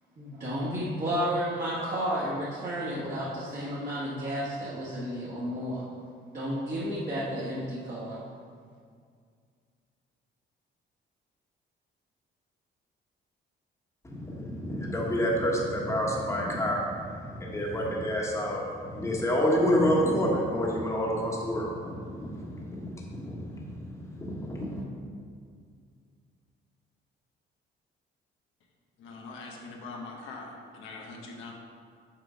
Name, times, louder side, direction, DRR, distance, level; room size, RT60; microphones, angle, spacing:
voice 1, 0.2-5.8 6.3-8.2, equal, 45° right, -9 dB, 1.6 m, -32 dB
voice 2, 14.0-24.9, equal, 15° left, -3 dB, 1.2 m, -29 dB
voice 3, 29.0-31.5, left 3 dB, 90° left, 0 dB, 0.9 m, -42 dB
6.4 x 3.9 x 5.1 m, 2.1 s
cardioid pair, 90°, 20 cm